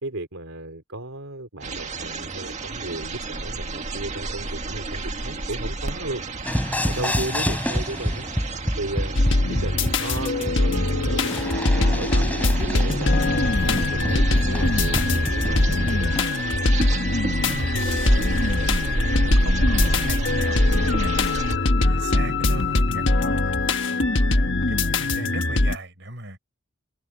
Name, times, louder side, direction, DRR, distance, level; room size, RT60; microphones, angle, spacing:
voice 1, 0.0-6.2 6.8-8.3 8.8-9.2 9.5-13.2 13.6-16.1, right 2 dB, 75° right, 3.2 m, -34 dB
sound 1, 1.6-21.6, right 1 dB, 35° right, 1.8 m, -29 dB
sound 2, 6.5-16.3, equal, 5° left, 4.5 m, -28 dB
voice 2, 6.9-7.3 13.5-13.8 17.4-23.5 23.9-26.4, right 2 dB, 55° right, 6.1 m, -38 dB
sound 3, 9.2-25.8, left 2 dB, 60° left, 1.4 m, -22 dB
head